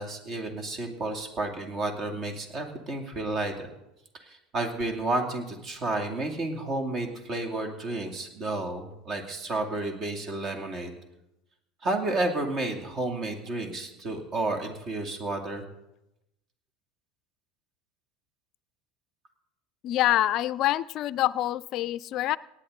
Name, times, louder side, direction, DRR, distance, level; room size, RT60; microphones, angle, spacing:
voice 1, 0.0-3.7 4.2-10.9 11.8-15.6, right 2 dB, 40° right, 3 dB, 2.5 m, -31 dB
voice 2, 19.8-22.4, left 14 dB, 50° left, 17 dB, 0.4 m, -26 dB
18.5 x 9.9 x 3.9 m, 0.89 s
hypercardioid pair, 85°, 0 cm